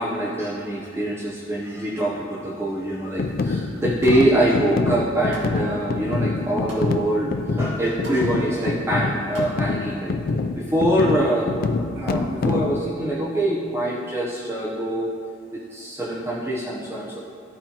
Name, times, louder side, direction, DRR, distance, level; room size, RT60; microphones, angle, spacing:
voice 1, 0.0-10.1 10.5-11.5 11.9-15.1 15.5-17.2, right 1 dB, 15° right, -6 dB, 0.6 m, -24 dB
sound 1, 3.2-12.8, left 3 dB, 50° left, 0.3 m, -26 dB
sound 2, 3.7-4.2 4.7-5.5 5.9-6.9 7.4-7.5 7.7-8.3 8.5-9.5 9.8-9.9, equal, 70° right, 1.7 m, -42 dB
13.0 x 4.3 x 2.9 m, 2.5 s
head